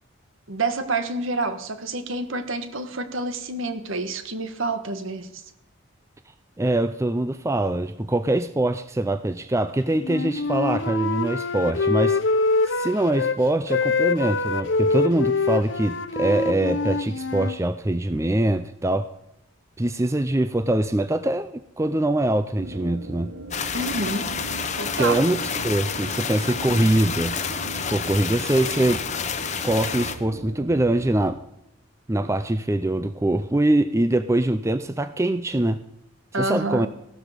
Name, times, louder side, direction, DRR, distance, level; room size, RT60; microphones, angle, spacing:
voice 1, 0.5-5.4 23.7-24.3 24.7-25.2 36.3-36.9, right 2 dB, 65° right, 1.5 m, -28 dB
voice 2, 6.6-12.2 12.6-19.1 19.8-23.3 25.0-25.4 25.6-27.3 27.9-29.0 29.6-31.4 32.1-35.8 36.4-36.9, right 1 dB, 15° right, 0.4 m, -23 dB
Wind instrument woodwind instrument, 10.0-13.4 13.7-17.6, left 3 dB, 55° left, 0.7 m, -24 dB
sound 1, 22.6-31.3, right 2 dB, 50° right, 1.0 m, -38 dB
sound 2, 23.5-30.2, left 6 dB, 35° left, 1.0 m, -29 dB
16.5 x 12.5 x 5.1 m
head